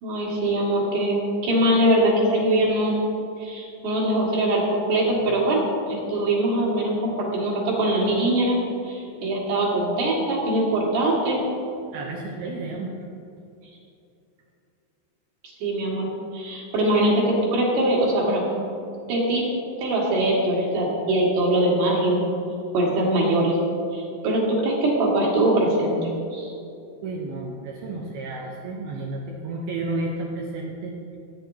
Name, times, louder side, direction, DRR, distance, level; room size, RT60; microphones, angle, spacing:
voice 1, 0.0-3.0 3.4-5.6 5.9-8.6 8.9-11.4 15.6-16.1 16.3-18.4 19.1-19.5 19.8-22.3 22.7-23.5 23.9-26.5, right 1 dB, 65° right, -4 dB, 3.8 m, -22 dB
voice 2, 11.9-13.1 27.0-31.2, right 2 dB, 80° right, -1 dB, 2.3 m, -32 dB
17.0 x 9.3 x 2.8 m, 2.6 s
omnidirectional pair, 5.5 m